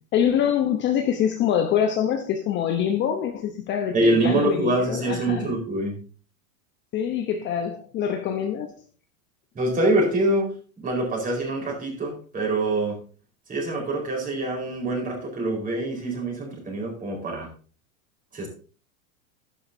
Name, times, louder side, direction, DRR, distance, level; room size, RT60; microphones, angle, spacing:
voice 1, 0.1-5.5 6.9-8.7, left 9 dB, 25° left, 0.9 m, -25 dB
voice 2, 3.9-6.0 9.5-13.0 13.5-17.5 18.3-18.5, right 2 dB, 20° right, 4.6 m, -25 dB
12.0 x 11.5 x 2.7 m
supercardioid pair, 145°, 44 cm